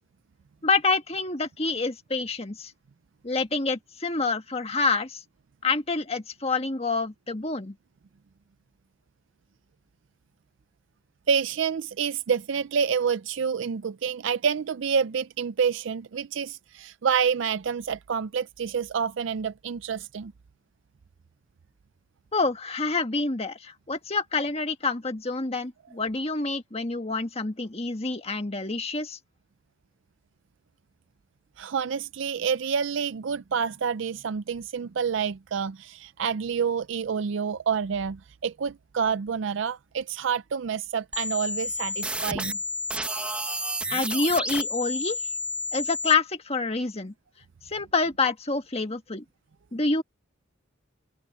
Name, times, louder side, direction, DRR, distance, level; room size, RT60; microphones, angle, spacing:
voice 1, 0.6-2.7 3.2-5.2 5.6-7.7 22.3-29.2 43.9-45.2 45.7-47.1 47.7-49.2 49.7-50.0, left 3 dB, 30° left, 1.6 m, -27 dB
voice 2, 11.3-20.3 31.6-42.6, right 6 dB, 65° right, 0.4 m, -28 dB
sound 1, 41.1-46.1, left 1 dB, 5° right, 1.1 m, -31 dB
head